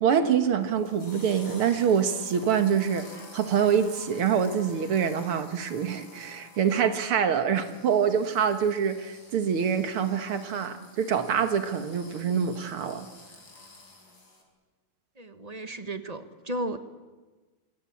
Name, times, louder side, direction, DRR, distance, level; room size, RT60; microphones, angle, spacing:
voice 1, 0.0-13.1, right 7 dB, 85° right, 8 dB, 2.4 m, -25 dB
sound 1, 0.6-14.4, left 2 dB, 60° left, 5.5 m, -50 dB
voice 2, 15.2-16.8, right 1 dB, 25° right, 9 dB, 0.9 m, -34 dB
27.0 x 23.0 x 8.5 m, 1.3 s
omnidirectional pair, 2.3 m